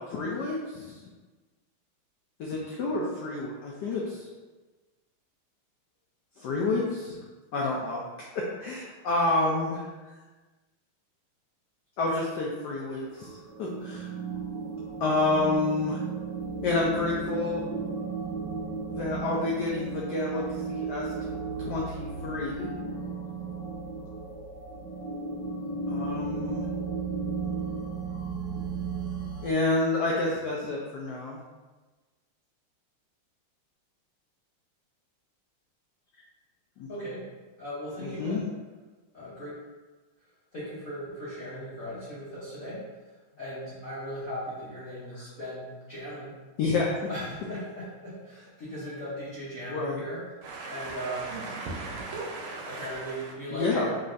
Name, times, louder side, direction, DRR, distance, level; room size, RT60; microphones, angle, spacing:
voice 1, 0.1-0.9 2.4-4.3 6.4-7.2 7.5-8.0 8.3-9.8 12.0-14.1 15.0-16.0 16.6-17.6 19.0-20.4 20.7-21.0 21.6-22.7 25.9-26.6 29.4-31.4 36.8-36.9 38.0-38.4 46.6-47.1 49.7-50.0 53.5-53.9, left 2 dB, 85° left, -3 dB, 0.9 m, -29 dB
sound 1, 13.0-29.5, right 4 dB, 25° right, 0.9 m, -34 dB
voice 2, 36.9-37.2 37.6-38.4 39.1-39.6 40.5-42.8 43.4-46.3 47.1-50.2 50.7-51.4 52.7-54.0, equal, 55° left, -10 dB, 0.9 m, -37 dB
voice 3, 50.4-53.3, right 3 dB, 80° right, -1 dB, 1.5 m, -38 dB
3.8 x 3.2 x 2.5 m, 1.2 s
omnidirectional pair, 2.4 m